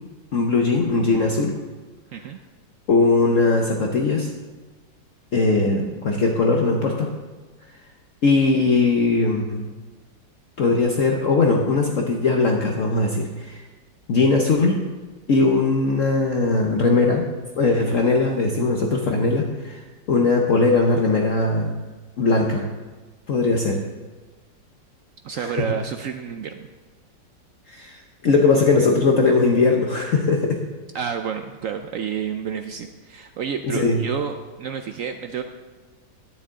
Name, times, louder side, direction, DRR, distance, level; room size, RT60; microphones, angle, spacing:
voice 1, 0.3-1.6 2.9-4.3 5.3-7.1 8.2-9.6 10.6-13.6 14.1-14.8 15.3-17.3 17.6-19.8 20.1-21.7 22.2-22.7 23.3-23.8 25.4-25.5 27.7-30.6 33.6-34.0, left 3 dB, 55° left, 1 dB, 1.0 m, -20 dB
voice 2, 25.2-26.7 30.9-35.4, right 7 dB, 80° right, 6 dB, 0.7 m, -30 dB
11.5 x 9.9 x 3.7 m, 1.3 s
omnidirectional pair, 2.0 m